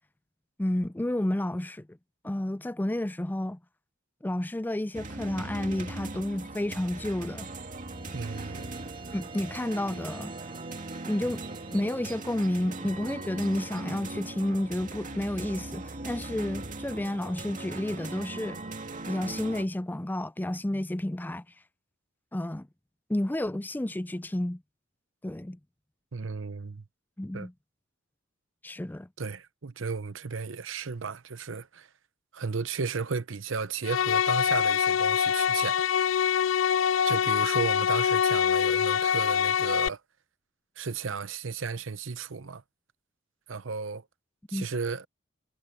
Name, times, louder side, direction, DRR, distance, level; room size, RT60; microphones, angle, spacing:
voice 1, 0.6-2.0 2.2-3.6 4.2-7.5 9.1-10.3 11.0-11.4 11.7-18.6 19.1-21.4 22.3-22.7 23.1-24.6 25.2-25.6 27.2-27.5 28.6-29.1 44.5-44.7, left 1 dB, 10° left, 0.4 m, -31 dB
sound 1, 4.9-19.6, right 2 dB, 40° right, 2.3 m, -39 dB
sound 2, 7.7-12.5, right 6 dB, 25° right, 2.2 m, -50 dB
voice 2, 8.1-8.7 26.1-26.8 27.3-27.5 29.2-31.9 32.3-35.8 37.0-40.0 40.8-42.6 43.5-44.0 44.5-45.1, right 5 dB, 70° right, 0.8 m, -34 dB
sound 3, 33.8-39.9, left 8 dB, 75° left, 0.4 m, -24 dB
head